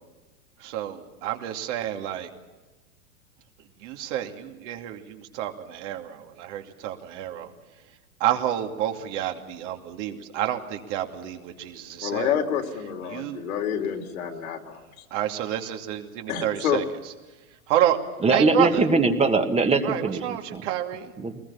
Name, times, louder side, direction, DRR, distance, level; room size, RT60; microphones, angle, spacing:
voice 1, 0.6-2.3 3.8-7.5 8.2-12.3 13.1-13.4 15.1-16.8 17.7-18.0 18.3-18.8 19.8-21.1, right 12 dB, 55° right, 4 dB, 2.6 m, -29 dB
voice 2, 12.0-15.0 16.3-16.8, left 8 dB, 70° left, 4 dB, 3.4 m, -28 dB
voice 3, 18.2-20.2 20.5-20.6 21.2-21.4, right 3 dB, 15° right, 6 dB, 1.7 m, -21 dB
23.0 x 20.5 x 7.2 m, 1.2 s
hypercardioid pair, 115°, 43 cm